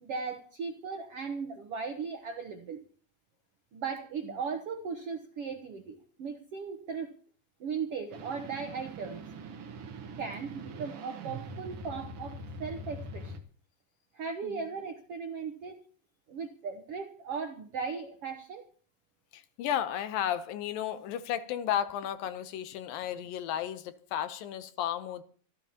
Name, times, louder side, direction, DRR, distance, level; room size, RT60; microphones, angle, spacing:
voice 1, 0.0-2.8 3.7-7.1 7.6-9.3 10.2-13.3 14.1-15.8 16.3-18.6, right 5 dB, 70° right, 1.4 m, -37 dB
sound 1, 8.1-13.4, right 2 dB, 55° right, 1.7 m, -43 dB
voice 2, 19.3-25.2, left 10 dB, 75° left, 2.5 m, -33 dB
26.0 x 14.0 x 2.9 m
omnidirectional pair, 4.2 m